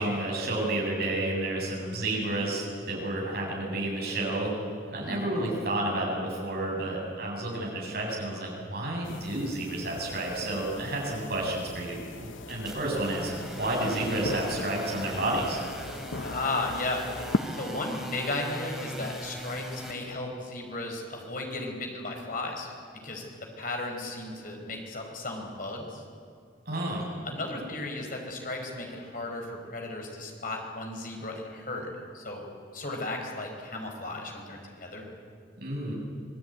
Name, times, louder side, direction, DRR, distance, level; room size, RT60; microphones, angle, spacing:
voice 1, 0.0-4.5 4.9-13.3 13.6-15.6 26.7-27.1 35.6-35.9, right 1 dB, 55° right, -2 dB, 7.8 m, -30 dB
sound 1, 9.0-17.4, left 2 dB, 80° left, 1.0 m, -38 dB
sound 2, 12.5-19.9, equal, ahead, 3.5 m, -41 dB
voice 2, 16.2-17.0 17.5-22.7 23.0-23.2 23.6-26.0 27.2-32.4 32.7-35.1, left 2 dB, 45° left, 2 dB, 4.9 m, -35 dB
26.0 x 19.5 x 9.4 m, 2.2 s
head